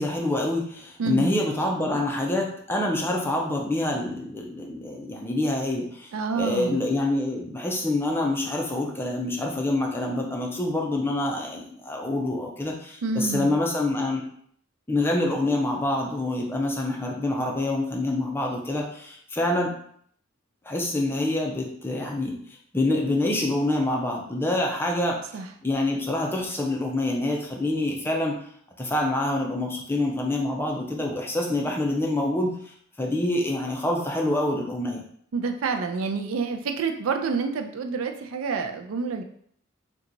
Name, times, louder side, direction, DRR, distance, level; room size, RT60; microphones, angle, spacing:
voice 1, 0.0-6.1 6.3-14.3 14.9-19.7 20.7-22.4 22.7-25.2 25.6-28.4 28.8-32.5 33.0-35.1, left 1 dB, 10° left, 0 dB, 0.5 m, -26 dB
voice 2, 1.0-1.3 6.1-6.8 13.0-13.5 25.3-25.5 35.3-39.2, right 4 dB, 85° right, 5 dB, 0.4 m, -28 dB
2.9 x 2.3 x 3.8 m, 0.64 s
head